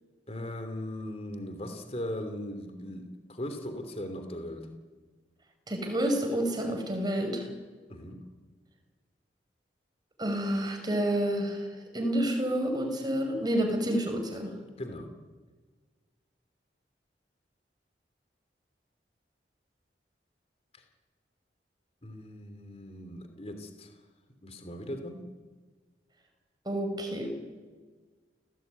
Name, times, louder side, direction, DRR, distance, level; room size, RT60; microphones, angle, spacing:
voice 1, 0.3-4.7 7.9-8.2 14.8-15.1 20.7-20.8 22.0-23.9 24.4-25.2, left 1 dB, 35° left, 7 dB, 2.9 m, -39 dB
voice 2, 5.7-7.5 10.2-14.5 26.7-27.3, right 1 dB, 25° right, 4 dB, 5.7 m, -29 dB
29.5 x 17.5 x 9.5 m, 1.4 s
head